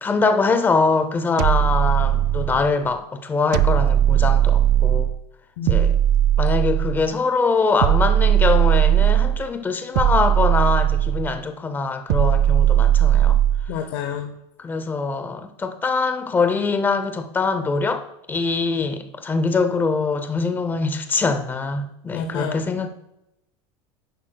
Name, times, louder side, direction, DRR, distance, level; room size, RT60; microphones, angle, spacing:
voice 1, 0.0-5.1 5.7-6.0 6.4-13.4 14.6-22.9, left 4 dB, 15° left, 0.6 m, -23 dB
sound 1, 1.4-2.7 3.5-5.2 5.7-7.1 7.8-9.4 10.0-11.4 12.1-13.7, right 11 dB, 60° right, 0.4 m, -18 dB
voice 2, 5.6-6.0 13.7-14.3 20.4-20.5 22.1-22.6, left 7 dB, 75° left, 0.7 m, -29 dB
10.5 x 9.8 x 2.3 m
cardioid pair, 160°, 14 cm